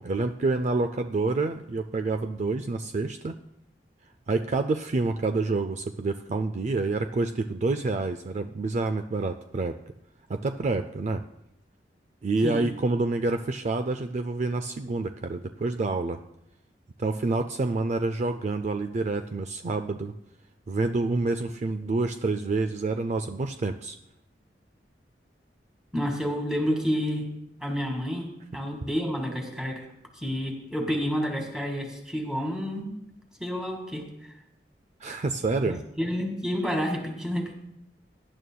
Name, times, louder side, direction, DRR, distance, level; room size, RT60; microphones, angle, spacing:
voice 1, 0.0-3.4 4.3-9.8 10.3-11.2 12.2-16.2 17.0-20.1 20.7-24.0 35.0-35.8, right 3 dB, 40° right, 8 dB, 0.4 m, -28 dB
voice 2, 25.9-27.3 27.6-29.9 30.2-32.9 33.4-34.1 36.0-37.5, equal, 5° right, 1 dB, 1.9 m, -29 dB
17.5 x 11.0 x 2.3 m, 0.79 s
head